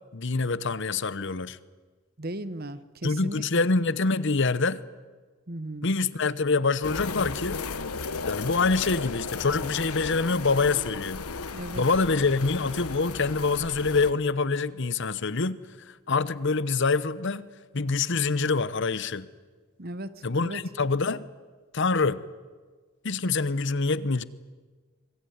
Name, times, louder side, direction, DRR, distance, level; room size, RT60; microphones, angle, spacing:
voice 1, 0.1-1.6 3.0-4.8 5.8-7.6 8.2-11.3 11.8-15.6 16.1-17.5 17.7-19.3 20.2-21.2 21.7-22.2 23.0-24.2, left 4 dB, 55° left, 0.9 m, -25 dB
voice 2, 2.2-3.6 5.5-5.9 11.5-11.8 19.8-20.1 20.4-20.6, right 1 dB, 45° right, 1.1 m, -36 dB
sound 1, 6.8-14.1, left 4 dB, 90° left, 1.2 m, -35 dB
25.0 x 21.5 x 9.6 m
head